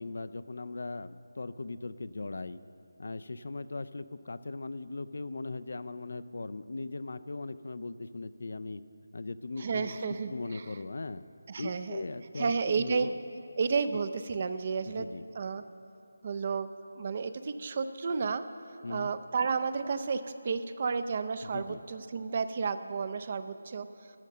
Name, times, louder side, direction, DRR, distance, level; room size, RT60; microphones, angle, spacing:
voice 1, 0.0-2.6 3.0-8.8 9.1-10.0 10.3-11.2 11.6-13.2 14.8-15.2 18.8-19.1 21.5-21.8, left 3 dB, 65° left, 14 dB, 0.4 m, -39 dB
voice 2, 9.6-10.7 11.5-12.0 12.4-13.1 13.6-15.1 15.4-15.6 16.2-18.5 18.9-23.9, right 5 dB, 35° right, 11 dB, 0.5 m, -32 dB
12.0 x 7.3 x 6.7 m, 2.6 s
figure-of-eight pair, 170°, 0 cm